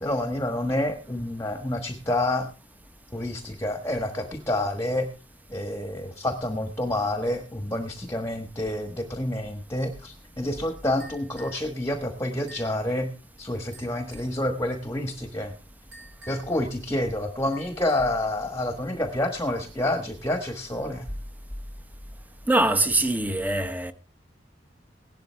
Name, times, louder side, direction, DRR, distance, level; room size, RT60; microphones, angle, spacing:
voice 1, 0.0-2.5 3.1-5.1 5.5-13.1 13.4-15.5 16.3-21.1, left 1 dB, 15° left, 1.3 m, -28 dB
sound 1, 11.0-11.7 12.5-12.8 13.7-14.4 15.9-16.6 17.5-18.2, right 2 dB, 75° right, 6.4 m, -49 dB
voice 2, 22.5-23.9, right 2 dB, 10° right, 1.0 m, -23 dB
17.0 x 12.0 x 3.4 m
head